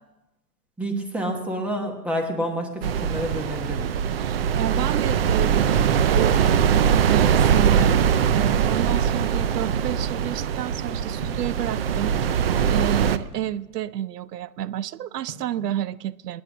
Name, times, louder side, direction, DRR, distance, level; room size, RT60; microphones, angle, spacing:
voice 1, 0.8-3.9 15.6-15.7, equal, 5° right, 3 dB, 1.0 m, -29 dB
sound 1, 2.8-13.2, right 8 dB, 40° right, 0.6 m, -21 dB
voice 2, 4.2-6.5 6.9-16.4, right 11 dB, 85° right, 18 dB, 0.7 m, -30 dB
sound 2, 11.2-11.6 12.4-13.6 15.3-15.6, right 3 dB, 60° right, 3.1 m, -41 dB
19.5 x 10.5 x 6.0 m, 1.1 s
hypercardioid pair, 160°, 46 cm